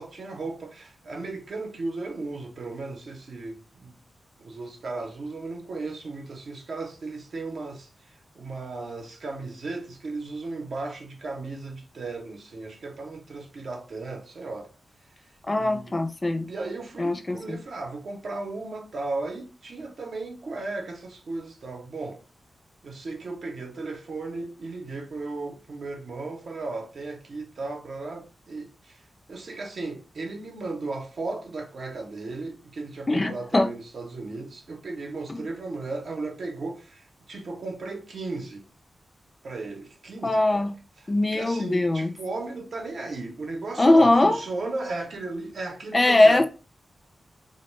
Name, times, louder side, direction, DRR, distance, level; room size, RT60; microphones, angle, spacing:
voice 1, 0.0-4.0 4.4-7.9 8.4-14.7 15.6-16.0 16.4-22.2 22.8-29.0 29.3-38.7 39.4-40.7 41.3-46.4, right 3 dB, 65° right, 0.6 m, -35 dB
voice 2, 15.5-16.5 17.0-17.6 33.1-33.7 35.3-35.4 40.2-40.7 41.1-42.1 43.8-44.4 45.9-46.5, left 2 dB, 25° left, 0.4 m, -21 dB
2.2 x 2.1 x 3.1 m
wide cardioid pair, 90°, 0 cm